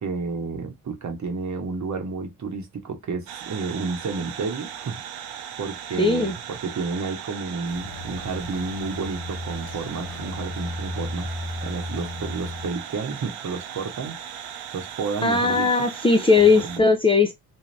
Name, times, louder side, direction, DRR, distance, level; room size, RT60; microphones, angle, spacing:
voice 1, 0.0-5.0 5.6-11.3 11.6-15.9 16.4-16.8, right 4 dB, 45° right, 1.1 m, -31 dB
sound 1, 3.3-16.8, right 9 dB, 70° right, 0.7 m, -38 dB
voice 2, 6.0-6.3 15.2-17.3, left 4 dB, 15° left, 0.7 m, -18 dB
sound 2, 7.6-12.7, left 1 dB, 65° left, 0.8 m, -35 dB
2.6 x 2.3 x 3.2 m
supercardioid pair, 55°, 41 cm